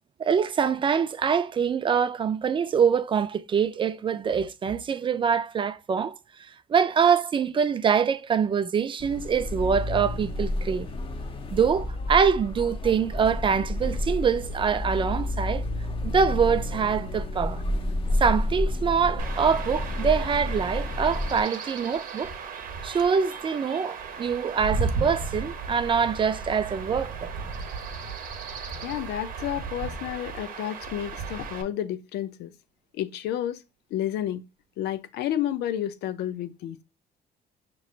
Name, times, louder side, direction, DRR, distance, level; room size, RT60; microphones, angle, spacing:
voice 1, 0.2-6.1 6.7-10.9 11.5-15.7 16.0-17.6 18.2-22.3 22.8-27.3, right 6 dB, 30° right, 0.4 m, -24 dB
sound 1, 9.0-21.4, left 1 dB, 30° left, 0.7 m, -30 dB
Chirp tweet / Wind / Stream, 19.2-31.6, right 4 dB, 55° right, 0.9 m, -35 dB
voice 2, 28.8-32.5 32.9-33.6 33.9-34.4 34.8-36.8, left 11 dB, 80° left, 0.5 m, -31 dB
5.8 x 3.1 x 2.4 m
cardioid pair, 110°, 17 cm